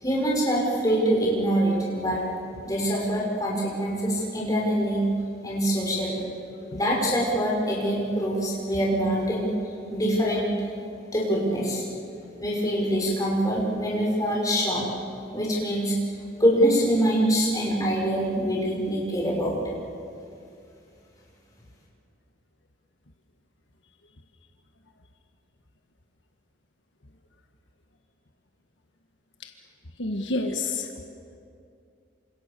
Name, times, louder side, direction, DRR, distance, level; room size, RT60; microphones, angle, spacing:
voice 1, 0.0-2.3 2.6-5.1 5.4-6.2 6.7-9.5 9.9-10.5 11.1-11.8 12.4-14.9 15.3-16.0 16.4-19.6, equal, 20° left, -3 dB, 6.1 m, -24 dB
voice 2, 30.0-30.9, left 2 dB, 80° left, 4 dB, 1.6 m, -29 dB
27.5 x 27.0 x 6.9 m, 2.5 s
head